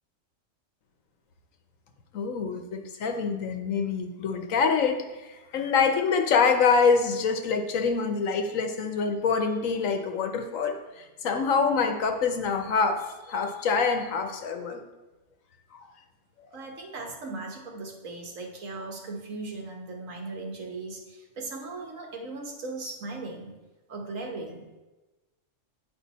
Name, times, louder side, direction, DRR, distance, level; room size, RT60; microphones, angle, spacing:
voice 1, 2.1-14.8 15.7-15.9, left 5 dB, 85° left, 5 dB, 1.3 m, -26 dB
voice 2, 16.5-23.5 23.9-24.8, right 3 dB, 80° right, 1 dB, 1.6 m, -38 dB
9.1 x 5.2 x 4.1 m, 1.1 s
omnidirectional pair, 1.4 m